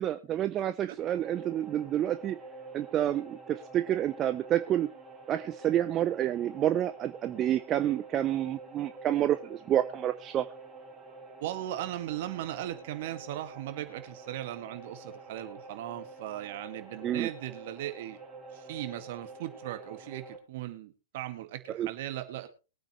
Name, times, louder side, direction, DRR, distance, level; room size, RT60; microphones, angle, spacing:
voice 1, 0.0-2.4 2.7-4.9 5.3-10.5 17.0-17.3 21.7-21.9, right 11 dB, 25° right, 11 dB, 0.7 m, -29 dB
sound 1, 1.0-20.4, right 3 dB, 5° right, 4.6 m, -48 dB
voice 2, 11.4-18.2 18.5-22.5, right 13 dB, 50° right, 9 dB, 2.1 m, -38 dB
22.0 x 8.9 x 3.2 m, 0.32 s
figure-of-eight pair, 110°, 0 cm